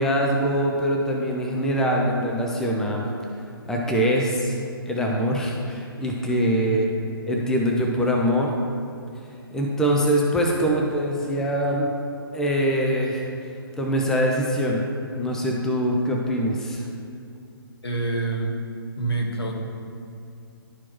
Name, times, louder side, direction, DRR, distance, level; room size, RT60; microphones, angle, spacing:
voice 1, 0.0-3.1 3.7-4.6 4.9-6.9 7.3-8.6 9.5-11.9 12.3-13.3 13.8-14.8 15.2-16.9, equal, 5° left, -1 dB, 0.5 m, -23 dB
voice 2, 17.8-18.6 19.0-19.5, right 3 dB, 85° left, 0 dB, 1.4 m, -26 dB
11.0 x 4.4 x 3.0 m, 2.6 s
figure-of-eight pair, 135°, 13 cm